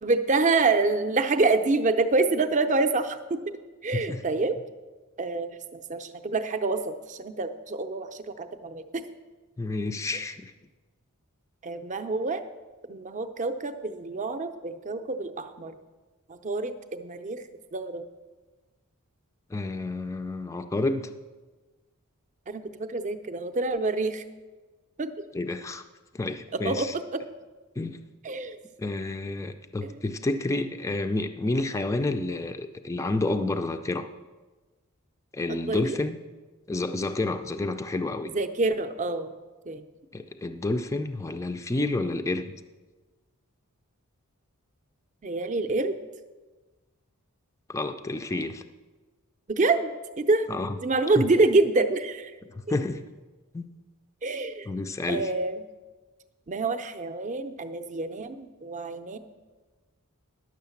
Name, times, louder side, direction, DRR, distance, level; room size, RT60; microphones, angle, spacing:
voice 1, 0.0-3.4 3.8-4.6 5.2-9.0 11.6-12.4 12.9-15.8 16.3-17.4 17.7-18.0 22.5-24.2 25.0-25.2 26.6-27.2 28.2-28.6 29.8-29.9 35.5-36.0 38.3-39.3 39.7-39.8 45.2-46.0 49.5-50.5 50.8-52.3 52.7-52.8 54.2-54.7 55.1-55.6 56.5-59.2, right 3 dB, 35° right, 9 dB, 0.6 m, -27 dB
voice 2, 3.9-4.2 9.6-10.5 19.5-21.1 25.3-25.8 26.1-26.9 27.8-28.0 28.8-34.1 35.3-36.2 36.7-38.3 40.1-42.6 47.7-48.6 50.5-50.8 51.2-51.3 52.7-53.0 53.5-53.7 54.7-55.3, left 2 dB, 15° left, 7 dB, 0.4 m, -29 dB
10.5 x 6.4 x 7.0 m, 1.3 s
head